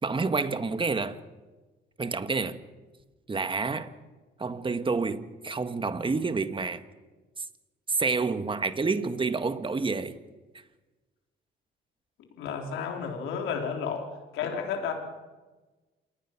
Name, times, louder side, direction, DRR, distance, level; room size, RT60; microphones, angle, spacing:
voice 1, 0.0-1.2 2.0-2.6 3.3-3.9 4.4-6.8 7.4-7.5 7.9-10.2, right 4 dB, 25° right, 1.6 m, -28 dB
voice 2, 12.4-14.0 14.3-14.9, left 6 dB, 90° left, 3.8 m, -31 dB
27.5 x 19.5 x 6.0 m
cardioid pair, 90°, 20 cm